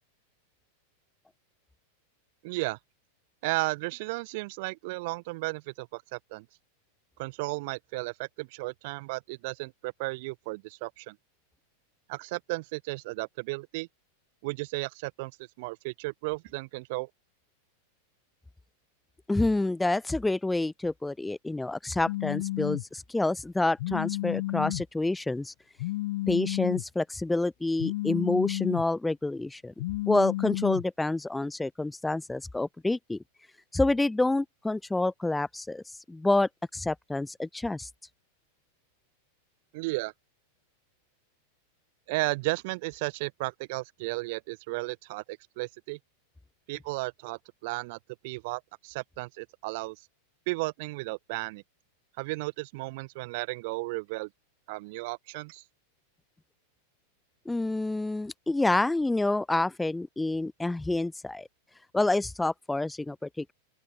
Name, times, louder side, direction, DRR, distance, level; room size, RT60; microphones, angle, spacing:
voice 1, 2.4-2.8 3.4-6.4 7.2-11.2 12.1-13.9 14.4-15.3 15.6-17.1 39.7-40.1 42.1-46.0 46.7-48.0 48.2-50.0 50.5-51.6 52.2-54.3 54.7-55.6, right 25 dB, 50° right, 1.3 m, -34 dB
voice 2, 19.3-25.5 26.3-29.7 30.1-33.2 33.7-37.9 57.5-61.5 61.9-63.5, left 2 dB, 5° left, 0.4 m, -28 dB
Telephone, 22.1-22.8 23.8-24.8 25.8-26.8 27.8-28.8 29.8-30.8, left 18 dB, 50° left, 1.0 m, -31 dB
open air
figure-of-eight pair, 90°, 0 cm